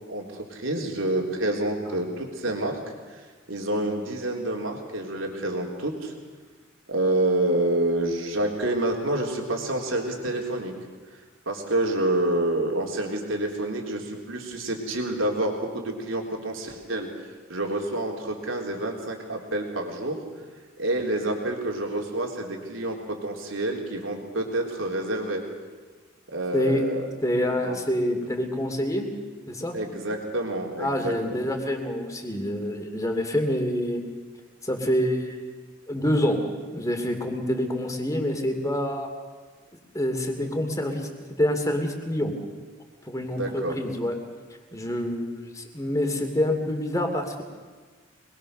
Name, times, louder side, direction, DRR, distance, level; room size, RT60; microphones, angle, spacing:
voice 1, 0.1-2.8 3.1-6.1 6.9-10.7 11.5-20.2 20.8-25.4 26.3-27.1 27.6-27.8 29.7-31.1 31.4-31.5 43.3-43.8, right 1 dB, 85° right, 1 dB, 3.7 m, -28 dB
voice 2, 26.5-26.8 27.2-29.1 29.5-29.8 30.8-34.0 34.6-35.5 35.9-36.4 36.7-39.1 39.9-41.1 41.4-42.3 43.1-44.2 44.7-47.4, equal, 15° left, 4 dB, 2.8 m, -26 dB
25.0 x 21.0 x 6.7 m, 1.4 s
head